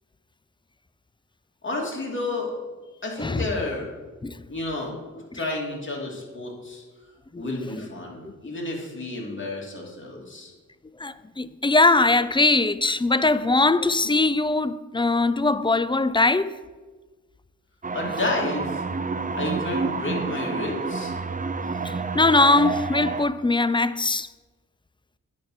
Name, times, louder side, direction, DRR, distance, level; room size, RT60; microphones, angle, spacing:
voice 1, 1.6-2.5 2.8-3.9 4.5-5.0 5.3-6.8 7.4-10.5 17.9-18.8 19.3-21.1, left 2 dB, 40° left, 2.9 m, -31 dB
voice 2, 7.3-7.7 8.2-8.3 11.0-16.5 21.8-24.3, left 2 dB, 15° left, 0.4 m, -21 dB
sound 1, 17.8-23.2, right 4 dB, 25° right, 0.7 m, -29 dB
9.3 x 5.5 x 6.6 m
cardioid pair, 50°, 31 cm